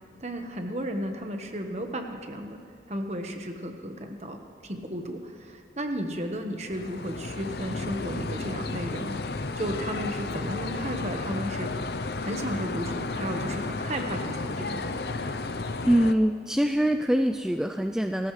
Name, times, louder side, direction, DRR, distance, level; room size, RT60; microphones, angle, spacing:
voice 1, 0.2-2.6 2.9-9.2 9.6-15.0, equal, 40° right, 4 dB, 1.3 m, -34 dB
sound 1, 6.6-16.1, left 3 dB, 65° left, 0.7 m, -33 dB
voice 2, 15.8-18.3, equal, 5° right, 5 dB, 0.3 m, -24 dB
29.0 x 13.5 x 3.3 m, 2.4 s
head